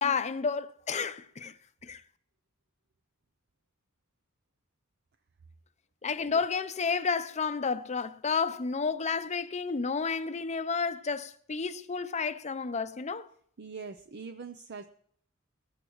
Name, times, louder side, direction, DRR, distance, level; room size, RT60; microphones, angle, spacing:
voice 1, 0.0-1.5 1.8-2.0 6.0-13.3, left 5 dB, 35° left, 0.7 m, -31 dB
voice 2, 13.6-14.9, right 5 dB, 50° right, 0.6 m, -42 dB
19.0 x 15.0 x 3.1 m
head